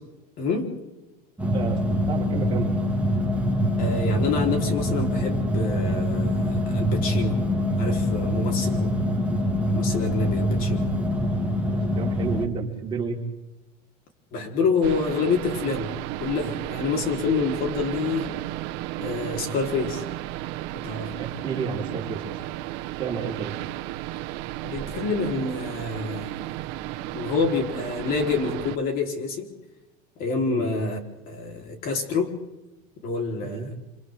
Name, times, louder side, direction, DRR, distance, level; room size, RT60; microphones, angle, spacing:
voice 1, 0.4-0.7 3.8-7.4 7.8-8.9 9.7-10.8 14.3-15.9 16.2-18.3 19.0-20.1 20.7-21.2 24.6-26.3 27.1-29.5 30.2-31.0 31.3-32.4 33.0-33.8, left 4 dB, 45° left, 3 dB, 4.1 m, -27 dB
sound 1, 1.4-12.5, left 1 dB, 5° right, 2.3 m, -24 dB
voice 2, 2.1-2.7 11.7-13.2 21.2-22.3 23.0-23.5 30.5-30.7 33.4-33.7, right 5 dB, 25° right, -2 dB, 4.7 m, -31 dB
sound 2, 14.8-28.8, right 15 dB, 60° right, 1.3 m, -33 dB
27.0 x 26.5 x 3.8 m, 1.0 s
supercardioid pair, 140°, 20 cm